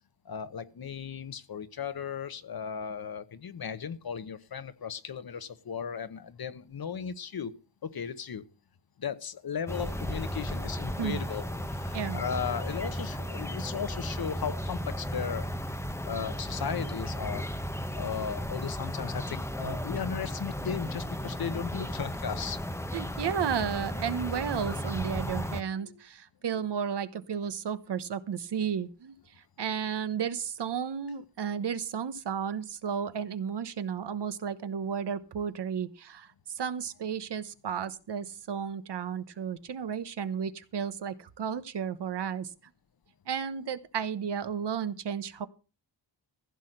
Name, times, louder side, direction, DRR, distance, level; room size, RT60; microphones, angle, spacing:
voice 1, 0.2-7.5 7.8-8.4 9.0-15.8 16.0-17.5 17.9-22.6 25.7-26.0 26.5-26.6, left 7 dB, 55° left, 1.1 m, -36 dB
sound 1, 9.7-25.6, equal, 5° left, 0.7 m, -35 dB
voice 2, 22.9-29.2 29.6-36.3 36.5-42.5 43.3-45.5, right 7 dB, 70° right, 1.1 m, -33 dB
15.5 x 5.8 x 8.0 m
wide cardioid pair, 160°, 43 cm